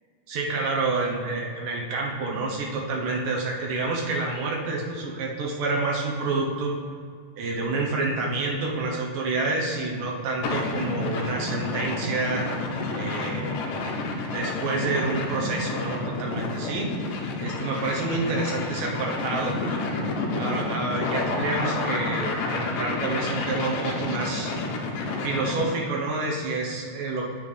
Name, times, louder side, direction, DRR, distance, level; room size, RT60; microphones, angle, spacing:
voice 1, 0.3-6.8 7.4-12.5 12.9-13.5 14.3-16.9 17.4-19.6 20.4-24.5 25.2-27.2, right 3 dB, 75° right, -1 dB, 2.6 m, -28 dB
sound 1, 10.4-25.8, left 3 dB, 75° left, 2.3 m, -29 dB
8.8 x 7.1 x 3.3 m, 2.1 s
omnidirectional pair, 4.0 m